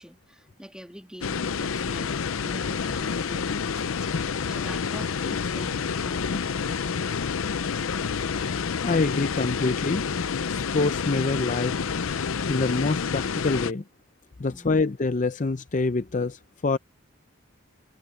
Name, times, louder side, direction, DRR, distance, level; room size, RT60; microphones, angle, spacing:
voice 1, 0.0-4.1 4.5-6.8 14.5-14.9, equal, 5° right, 2.0 m, -45 dB
sound 1, 1.2-13.7, left 6 dB, 85° left, 0.6 m, -28 dB
voice 2, 8.8-10.0 10.5-11.7 12.5-13.8 14.4-16.8, left 3 dB, 40° left, 0.5 m, -26 dB
head